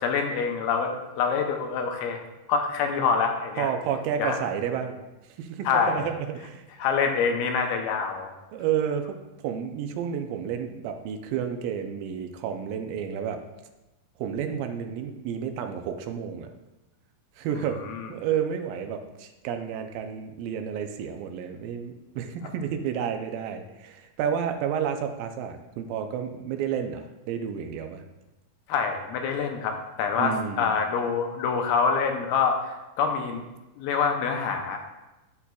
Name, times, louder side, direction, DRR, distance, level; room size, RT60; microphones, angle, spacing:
voice 1, 0.0-2.2 2.5-3.7 4.2-4.4 5.7-6.1 6.8-8.3 17.8-18.1 28.7-33.4 33.8-34.8, left 5 dB, 80° left, 4 dB, 2.4 m, -26 dB
voice 2, 3.6-5.0 5.4-6.6 8.5-9.2 9.4-13.4 14.2-16.5 17.4-28.0 30.2-30.7, right 8 dB, 85° right, 6 dB, 2.4 m, -31 dB
12.0 x 4.2 x 2.3 m, 1.0 s
omnidirectional pair, 4.1 m